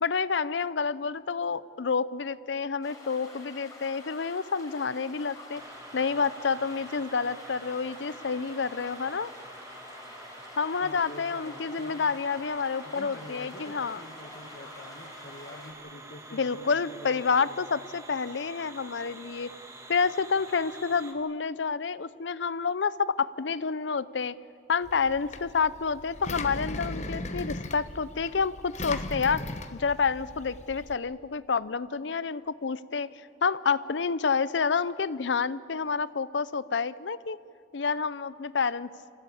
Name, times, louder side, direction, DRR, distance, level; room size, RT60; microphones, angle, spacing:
voice 1, 0.0-5.6 5.9-9.3 10.6-14.0 16.3-19.5 19.9-24.3 24.7-29.4 29.7-33.1 33.4-37.4 37.7-38.9, left 5 dB, 85° left, 17 dB, 0.6 m, -29 dB
sound 1, 2.8-15.7, left 2 dB, 20° left, 4.4 m, -48 dB
sound 2, 5.5-21.1, right 2 dB, 15° right, 1.9 m, -47 dB
voice 2, 10.8-12.2 12.8-17.9, left 1 dB, 60° left, 8 dB, 1.4 m, -47 dB
Engine, 24.8-30.9, left 2 dB, 40° left, 1.1 m, -38 dB
26.5 x 16.5 x 8.5 m, 2.4 s
head